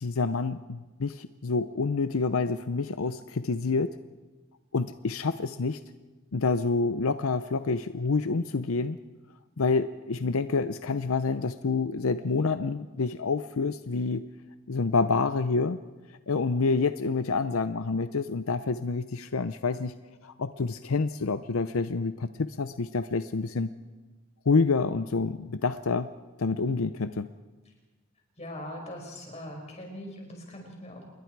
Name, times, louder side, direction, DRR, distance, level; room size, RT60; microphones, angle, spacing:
voice 1, 0.0-4.0 4.7-5.8 6.3-9.0 9.6-14.2 14.7-15.8 16.3-19.9 20.2-23.7 24.5-26.1 26.4-27.3, left 4 dB, 75° left, 11 dB, 0.6 m, -28 dB
voice 2, 28.4-31.1, left 1 dB, 30° left, 1 dB, 5.5 m, -41 dB
28.0 x 22.0 x 4.7 m, 1.3 s
head